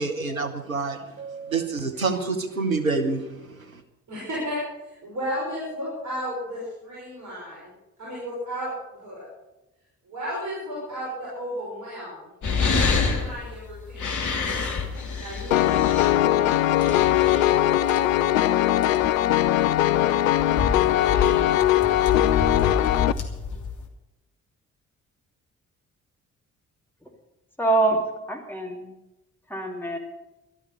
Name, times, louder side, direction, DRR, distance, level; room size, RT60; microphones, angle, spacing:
voice 1, 0.0-3.8, right 3 dB, 90° right, 7 dB, 0.9 m, -28 dB
voice 2, 4.1-7.7 8.0-9.3 10.1-12.3 13.0-14.1 15.1-16.3, equal, 45° right, -5 dB, 5.9 m, -34 dB
sound 1, 12.4-23.8, left 4 dB, 45° left, 2.2 m, -28 dB
Piano, 15.5-23.1, left 13 dB, 80° left, 0.5 m, -20 dB
voice 3, 27.6-28.9 29.5-30.0, right 3 dB, 5° left, 1 dB, 3.1 m, -25 dB
13.0 x 12.5 x 6.9 m, 0.99 s
figure-of-eight pair, 40°, 40 cm